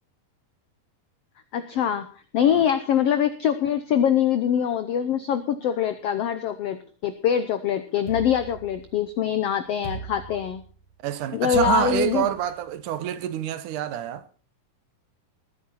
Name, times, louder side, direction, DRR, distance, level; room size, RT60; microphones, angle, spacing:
voice 1, 1.5-2.1 2.3-6.8 7.0-10.6 11.3-12.3, left 9 dB, 90° left, 1.3 m, -23 dB
sound 1, 8.1-9.2 9.8-10.9 11.5-12.6, right 4 dB, 20° left, 3.2 m, -37 dB
voice 2, 11.0-14.2, right 11 dB, 75° right, 2.3 m, -27 dB
20.5 x 9.6 x 4.1 m
omnidirectional pair, 3.9 m